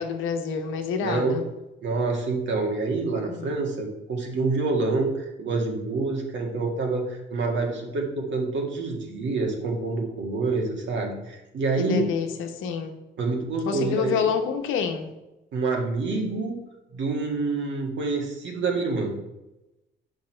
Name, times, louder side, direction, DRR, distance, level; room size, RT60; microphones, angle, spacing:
voice 1, 0.0-1.5 3.3-3.6 11.8-12.9 13.6-15.1, left 6 dB, 85° left, 6 dB, 1.0 m, -28 dB
voice 2, 1.0-1.4 1.8-12.0 13.2-14.2 15.5-16.6 16.9-19.1, right 3 dB, 70° right, 1 dB, 1.8 m, -27 dB
7.6 x 5.4 x 4.5 m, 0.99 s
cardioid pair, 90°, 20 cm